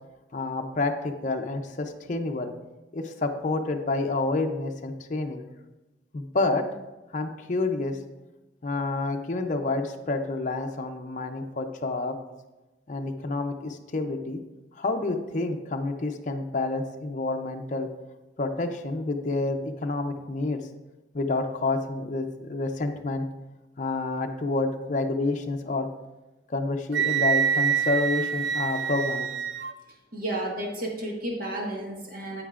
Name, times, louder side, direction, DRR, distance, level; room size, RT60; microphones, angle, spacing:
voice 1, 0.3-2.5 2.9-5.4 6.1-6.6 7.1-8.0 8.6-12.1 12.9-14.4 14.8-17.9 18.4-20.6 21.1-23.2 23.8-25.9 26.5-29.3, left 3 dB, 45° left, 4 dB, 0.6 m, -28 dB
Wind instrument woodwind instrument, 26.9-29.7, right 7 dB, 80° right, 0.4 m, -26 dB
voice 2, 30.1-32.4, right 1 dB, 55° right, -1 dB, 1.6 m, -32 dB
8.9 x 8.6 x 2.5 m, 1.1 s
head